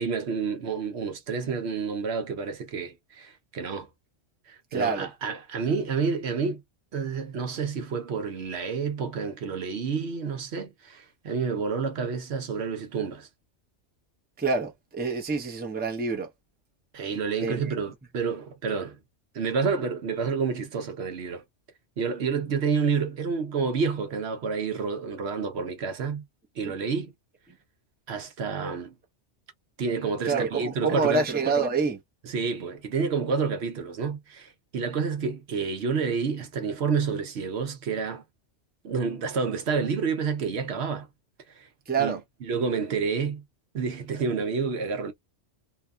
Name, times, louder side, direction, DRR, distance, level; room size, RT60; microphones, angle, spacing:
voice 1, 0.0-3.9 4.5-6.6 6.9-13.3 16.9-19.0 19.3-21.4 22.0-26.2 26.6-27.1 28.1-29.0 29.8-31.2 32.3-38.2 38.8-41.1 41.5-41.7 42.0-43.4 43.7-45.1, right 5 dB, 70° right, 1.0 m, -29 dB
voice 2, 4.7-5.1 14.4-16.3 17.4-17.7 30.2-32.0 41.9-42.2, right 4 dB, 10° right, 0.6 m, -26 dB
2.8 x 2.2 x 2.3 m
omnidirectional pair, 1.2 m